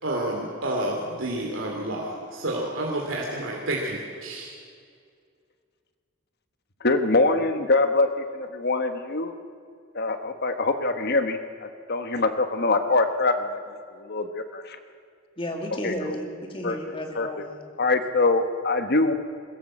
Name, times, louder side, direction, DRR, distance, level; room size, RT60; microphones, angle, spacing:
voice 1, 0.0-4.5, right 1 dB, 70° right, -2 dB, 2.8 m, -29 dB
voice 2, 6.8-8.1 8.3-9.3 9.9-13.6 14.1-14.8 15.8-15.9 16.6-16.8 17.1-17.3 17.8-19.1, left 3 dB, 55° left, 8 dB, 1.4 m, -23 dB
voice 3, 15.4-17.6, equal, 25° left, 2 dB, 2.7 m, -33 dB
21.5 x 16.5 x 7.5 m, 2.2 s
head